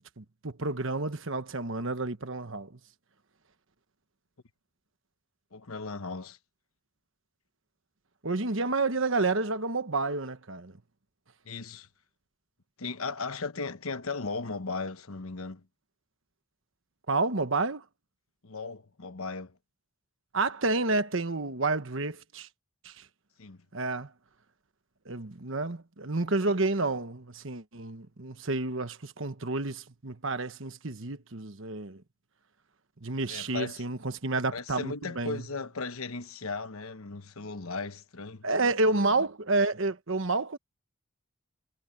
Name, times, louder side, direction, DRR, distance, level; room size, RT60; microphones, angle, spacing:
voice 1, 0.0-2.8 8.2-10.8 17.1-17.8 20.3-22.5 22.8-23.1 23.7-24.1 25.0-32.0 33.0-35.4 38.4-40.6, right 3 dB, 60° right, 1.3 m, -30 dB
voice 2, 5.5-6.4 11.4-11.9 12.8-15.7 18.4-19.6 23.4-23.6 33.3-33.8 34.5-38.5, left 4 dB, 75° left, 1.1 m, -36 dB
head